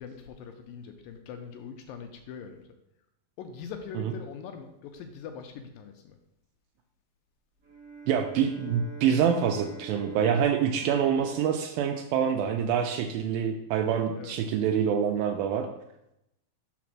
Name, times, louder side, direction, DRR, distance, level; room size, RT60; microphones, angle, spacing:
voice 1, 0.0-2.6 3.4-6.2 14.2-14.4, left 6 dB, 80° left, 6 dB, 2.1 m, -42 dB
Bowed string instrument, 7.6-13.2, right 2 dB, 50° right, 1.0 m, -46 dB
voice 2, 8.1-15.7, right 8 dB, 80° right, 5 dB, 2.2 m, -26 dB
5.1 x 4.2 x 6.0 m, 0.83 s
omnidirectional pair, 4.3 m